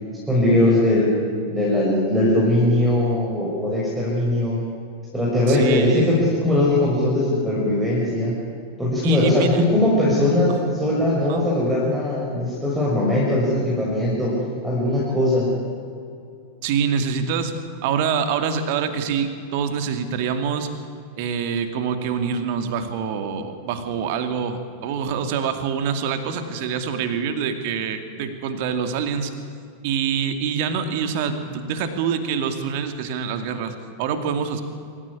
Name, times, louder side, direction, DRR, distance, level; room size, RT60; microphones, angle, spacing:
voice 1, 0.3-1.1 1.5-4.6 5.1-8.3 8.8-14.3 14.6-15.5, left 1 dB, 5° right, -6 dB, 6.3 m, -20 dB
voice 2, 5.5-6.3 9.0-9.6 10.5-10.6 11.3-11.4 16.6-17.5 17.8-20.7 21.2-29.3 29.8-34.6, right 6 dB, 50° right, 8 dB, 2.5 m, -25 dB
26.0 x 15.0 x 9.9 m, 2.5 s
figure-of-eight pair, 90°, 0 cm